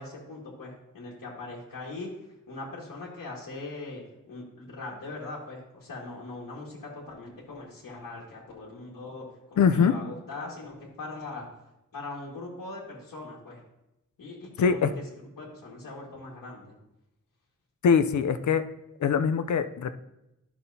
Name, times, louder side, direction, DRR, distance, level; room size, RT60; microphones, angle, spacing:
voice 1, 0.0-2.1 2.5-4.0 4.3-11.5 11.9-13.6 14.2-14.9 15.4-16.7, left 2 dB, 85° left, -4 dB, 1.7 m, -40 dB
voice 2, 9.6-9.9 14.6-14.9 17.8-18.6 19.0-19.9, left 6 dB, 65° left, 10 dB, 0.5 m, -22 dB
11.5 x 5.9 x 2.7 m, 0.88 s
wide cardioid pair, 155°, 32 cm